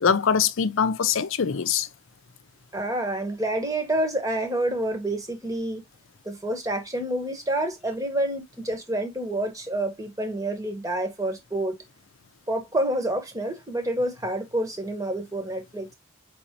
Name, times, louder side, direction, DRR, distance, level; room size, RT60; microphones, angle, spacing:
voice 1, 0.0-1.9, left 6 dB, 70° left, 0.5 m, -23 dB
voice 2, 2.7-5.8 6.2-11.8 12.5-15.9, right 1 dB, 15° right, 1.0 m, -28 dB
5.2 x 3.5 x 2.8 m
head